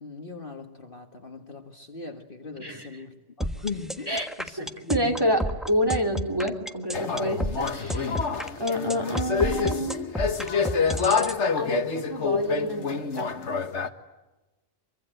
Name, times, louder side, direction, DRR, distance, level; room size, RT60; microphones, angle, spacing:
voice 1, 0.0-5.4, left 4 dB, 45° left, 4 dB, 1.8 m, -39 dB
sound 1, 3.4-11.4, equal, ahead, 1.2 m, -30 dB
voice 2, 4.6-8.2 8.6-10.0 10.4-10.8 11.6-13.3, equal, 20° right, 4 dB, 3.4 m, -28 dB
sound 2, 6.9-13.9, left 5 dB, 65° left, 1.7 m, -27 dB
25.0 x 24.0 x 9.0 m, 1.1 s
omnidirectional pair, 1.3 m